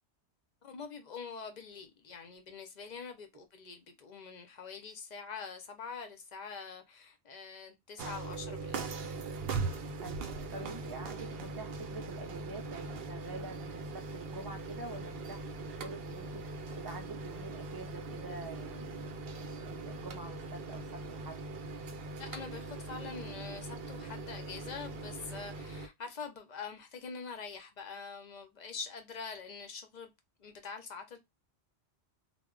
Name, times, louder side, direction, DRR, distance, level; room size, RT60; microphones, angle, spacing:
voice 1, 0.6-8.9 22.2-30.1 30.4-31.2, left 5 dB, 50° left, 0.6 m, -45 dB
sound 1, 8.0-25.9, right 3 dB, 65° right, 0.7 m, -41 dB
voice 2, 10.0-21.4, right 3 dB, 30° right, 0.4 m, -47 dB
2.1 x 2.0 x 3.6 m
omnidirectional pair, 1.1 m